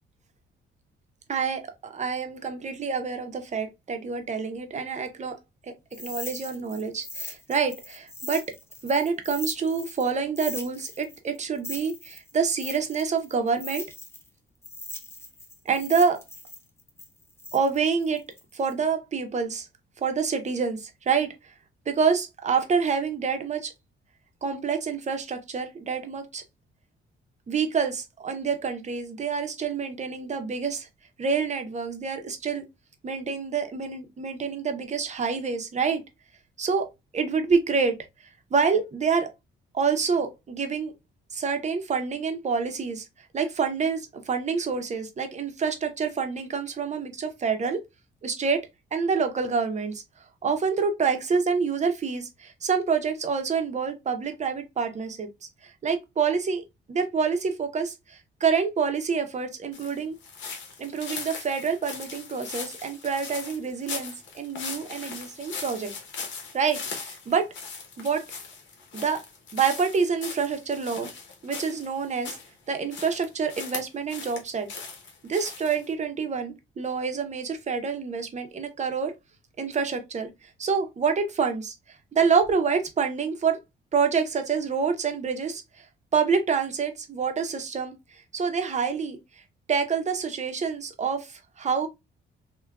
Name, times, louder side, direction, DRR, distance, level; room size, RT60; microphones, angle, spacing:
voice 1, 1.3-5.4 5.6-8.4 8.8-13.8 15.7-16.2 17.5-18.2 18.5-19.7 20.0-21.5 21.9-23.7 24.4-26.4 27.5-30.9 31.2-32.6 33.0-36.0 36.6-36.9 37.1-38.0 38.5-39.3 39.7-40.9 41.3-43.1 43.3-47.8 48.2-50.0 50.4-55.3 55.6-60.2 60.8-65.9 66.5-67.5 68.0-68.2 68.9-69.2 69.5-71.1 71.4-72.4 72.7-74.7 75.2-79.1 79.6-83.6 83.9-85.9 86.1-89.2 89.7-91.9, right 5 dB, 35° right, 0.7 m, -27 dB
sound 1, 5.9-10.1 10.4-14.3 14.6-18.7, left 2 dB, 15° left, 0.6 m, -40 dB
sound 2, 59.7-72.5 72.9-74.4 74.7-75.9, left 5 dB, 70° left, 0.9 m, -39 dB
3.4 x 2.2 x 2.3 m
cardioid pair, 90°, 20 cm